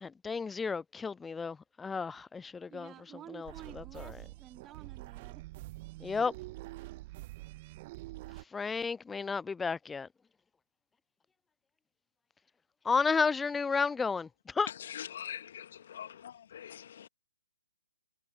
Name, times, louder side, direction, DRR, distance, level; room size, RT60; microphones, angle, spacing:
voice 1, 0.0-2.9 3.3-4.2 6.0-6.3 8.5-10.1 12.8-14.7, left 5 dB, 10° left, 0.3 m, -32 dB
voice 2, 2.7-5.4, right 11 dB, 15° right, 4.4 m, -51 dB
sound 1, 3.4-8.4, right 19 dB, 35° right, 1.7 m, -46 dB
voice 3, 14.9-17.1, left 9 dB, 50° left, 2.2 m, -44 dB
figure-of-eight pair, 135°, 0 cm